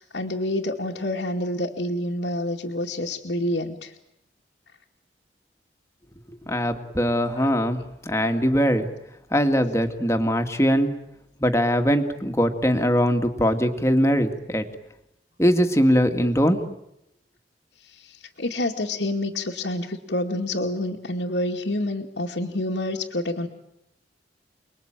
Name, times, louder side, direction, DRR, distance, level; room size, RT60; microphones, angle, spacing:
voice 1, 0.0-3.9 7.4-7.5 18.4-23.5, left 1 dB, 85° left, -2 dB, 2.4 m, -28 dB
voice 2, 6.5-8.9 9.3-10.9 11.4-14.7 15.4-16.6, equal, 15° left, 6 dB, 2.1 m, -21 dB
29.5 x 21.5 x 9.1 m, 0.82 s
head